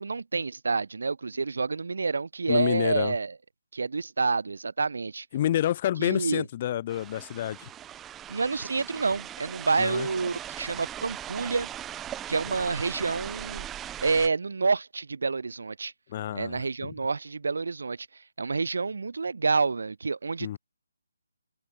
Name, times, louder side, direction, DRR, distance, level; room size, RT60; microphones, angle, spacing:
voice 1, 0.0-3.3 3.7-5.3 6.0-6.4 8.3-11.7 12.3-13.7 14.0-15.9 16.3-18.1 18.4-20.6, right 4 dB, 70° right, 0.9 m, -28 dB
voice 2, 2.5-3.1 5.3-7.7 9.8-10.1 16.1-16.9 20.4-20.6, left 12 dB, 35° left, 2.3 m, -28 dB
sound 1, 6.9-14.3, right 11 dB, 10° right, 0.7 m, -39 dB
figure-of-eight pair, 150°, 0 cm